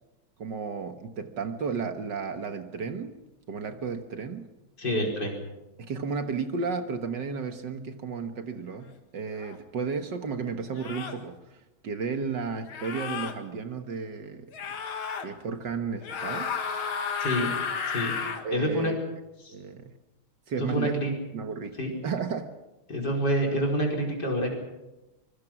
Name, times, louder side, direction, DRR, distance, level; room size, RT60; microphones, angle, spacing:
voice 1, 0.4-3.1 3.5-4.5 5.8-14.5 15.2-16.5 18.4-19.0 19.5-19.9 20.5-21.0 21.3-21.8 22.0-22.6, right 5 dB, 60° right, 7 dB, 2.0 m, -33 dB
voice 2, 4.8-5.4 17.2-17.5 17.8-18.1 18.5-18.9 19.4-19.5 20.6-21.1 21.8-21.9 22.9-24.5, equal, 55° left, 1 dB, 5.5 m, -27 dB
sound 1, 9.4-9.5 10.8-11.2 12.7-13.3 14.5-15.3 16.0-18.4, left 6 dB, 85° left, 2.6 m, -32 dB
25.0 x 23.0 x 6.1 m, 1.0 s
omnidirectional pair, 2.2 m